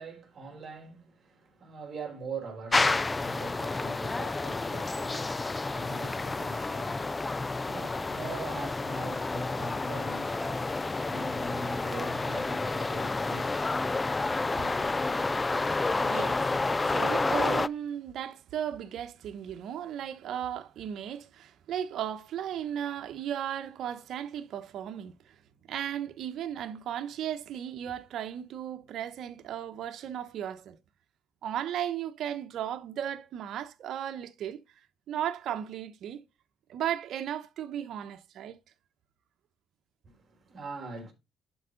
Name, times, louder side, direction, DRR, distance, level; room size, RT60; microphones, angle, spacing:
voice 1, 0.0-7.4 7.6-13.8 14.6-14.8 40.0-41.1, right 3 dB, 50° right, 4.3 m, -42 dB
sound 1, 2.7-17.7, left 3 dB, 20° left, 0.4 m, -30 dB
voice 2, 15.4-16.5 16.8-25.3 25.7-30.8 31.4-34.6 35.1-36.2 36.7-38.6, right 10 dB, 75° right, 1.1 m, -36 dB
11.5 x 4.8 x 4.0 m
cardioid pair, 90°, 0 cm